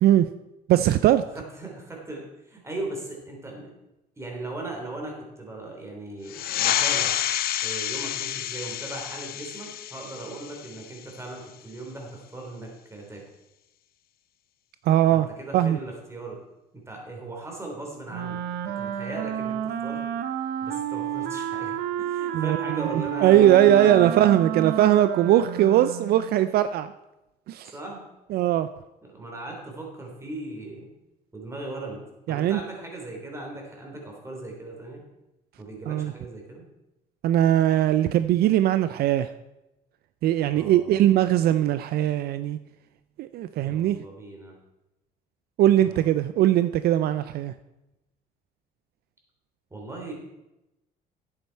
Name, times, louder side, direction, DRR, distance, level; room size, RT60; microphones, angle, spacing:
voice 1, 0.7-1.2 14.8-15.3 15.5-15.8 22.3-26.9 27.5-27.7 28.3-28.7 32.3-32.6 35.9-36.1 37.2-39.3 40.2-42.6 43.2-44.0 45.6-47.5, right 12 dB, 65° right, 13 dB, 0.4 m, -20 dB
voice 2, 1.3-3.7 4.2-7.2 7.6-13.2 15.1-16.4 16.7-20.0 20.6-24.3 27.7-28.0 29.1-30.9 31.3-32.0 32.3-35.0 35.6-36.6 40.5-41.1 43.6-44.6 45.8-46.1 49.7-50.1, right 2 dB, 15° right, 0 dB, 3.2 m, -38 dB
sound 1, 6.3-11.4, left 11 dB, 65° left, 0.7 m, -29 dB
Wind instrument woodwind instrument, 18.1-26.3, right 9 dB, 85° right, 0.8 m, -31 dB
10.5 x 8.7 x 4.6 m, 0.96 s
cardioid pair, 110°, 17 cm